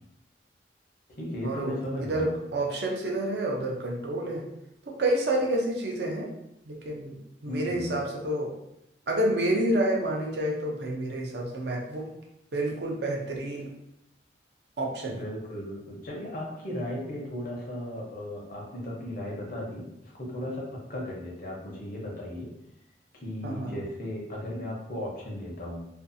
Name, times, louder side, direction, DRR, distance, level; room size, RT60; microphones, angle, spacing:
voice 1, 1.2-2.4 7.5-7.9 15.1-22.5 23.1-25.9, left 1 dB, 50° left, -3 dB, 0.7 m, -36 dB
voice 2, 2.0-4.5 4.8-6.3 6.7-7.2 7.4-8.5 9.1-12.1 12.5-13.7 14.8-15.2 23.4-23.8, right 1 dB, 70° right, -1 dB, 0.6 m, -29 dB
2.5 x 2.3 x 2.6 m, 0.81 s
head